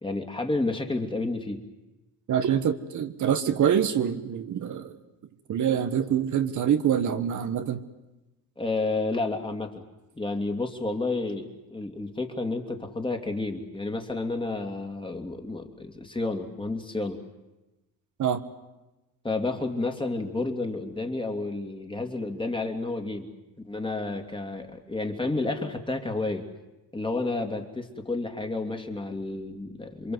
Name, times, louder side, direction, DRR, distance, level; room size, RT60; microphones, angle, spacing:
voice 1, 0.0-1.6 8.6-9.8 10.2-17.2 19.2-23.3 23.6-26.5 26.9-30.1, left 2 dB, 15° left, 4 dB, 2.8 m, -30 dB
voice 2, 2.3-5.0 5.5-7.8 18.2-18.4, right 9 dB, 50° right, 8 dB, 1.4 m, -25 dB
28.0 x 23.5 x 7.9 m, 1.0 s
cardioid pair, 100°, 38 cm